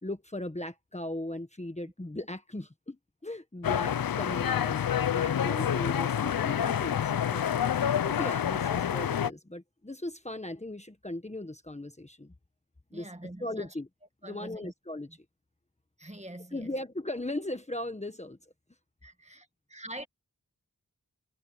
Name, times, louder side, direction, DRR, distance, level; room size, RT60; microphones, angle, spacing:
voice 1, 0.0-7.4 8.0-12.3 12.9-13.1 13.4-13.9 14.2-15.1 16.5-18.4, left 1 dB, 20° left, 1.3 m, -38 dB
sound 1, 3.6-9.3, left 9 dB, 75° left, 0.6 m, -28 dB
voice 2, 12.9-13.7 14.2-14.7 15.1-15.2 16.0-16.7 19.0-19.4 19.7-20.1, right 1 dB, 20° right, 1.9 m, -44 dB
wide cardioid pair, 70°, 36 cm